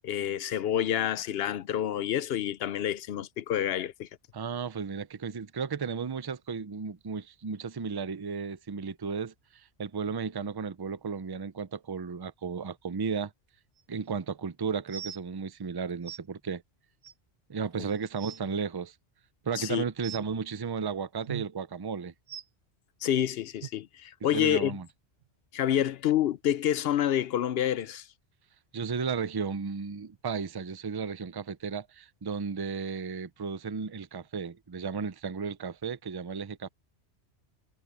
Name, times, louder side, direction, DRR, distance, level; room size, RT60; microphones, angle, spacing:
voice 1, 0.0-4.1 19.6-19.8 23.0-24.8 25.5-28.1, left 10 dB, 70° left, 0.8 m, -28 dB
voice 2, 4.3-13.3 13.9-16.6 17.5-18.9 19.4-22.1 24.3-24.9 28.7-36.7, right 5 dB, 30° right, 0.5 m, -34 dB
sound 1, 13.8-13.9 14.9-15.2 16.1-16.2 17.0-17.1 17.7-17.8 18.0-18.4 20.0-20.3 21.3-21.5 22.3-22.4 23.6-23.7 24.5-24.6 25.2-25.3, right 10 dB, 85° right, 1.1 m, -40 dB
omnidirectional pair, 1.1 m